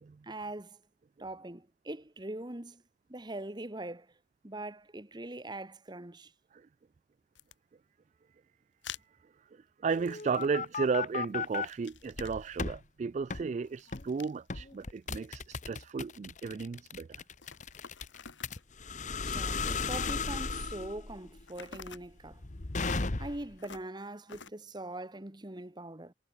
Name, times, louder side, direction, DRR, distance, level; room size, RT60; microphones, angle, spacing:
voice 1, 0.2-0.8 1.2-2.8 3.1-4.1 4.4-6.3 19.2-22.4 23.2-26.1, right 1 dB, 25° right, 1.3 m, -42 dB
sound 1, 7.4-7.5 8.8-9.0 9.9-10.9 11.2-12.5 13.7-14.4 14.8-15.9 17.2-18.7 19.5-20.6 21.5-22.1 22.8-23.1 23.6-23.9 24.3-24.5, left 6 dB, 90° left, 3.0 m, -48 dB
voice 2, 9.5-17.2, right 5 dB, 40° right, 0.3 m, -34 dB
sound 2, 9.9-11.7 12.1-12.8 13.3-13.5 13.9-14.1 14.5-23.6, left 4 dB, 40° left, 1.1 m, -36 dB
head